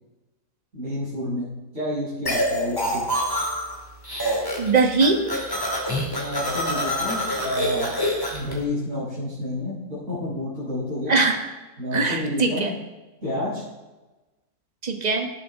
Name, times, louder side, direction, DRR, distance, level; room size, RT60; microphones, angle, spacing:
voice 1, 0.7-3.0 6.1-8.0 8.3-11.1 11.8-12.7 13.2-13.6, left 1 dB, 50° right, -12 dB, 5.3 m, -30 dB
sound 1, 2.3-3.8 4.0-4.7 5.0-8.5, equal, 15° left, 2.4 m, -26 dB
voice 2, 4.6-5.2 11.1-11.5 11.9-12.7 14.8-15.3, right 4 dB, 30° right, 4 dB, 1.2 m, -21 dB
18.0 x 7.7 x 3.6 m, 1.1 s
omnidirectional pair, 1.6 m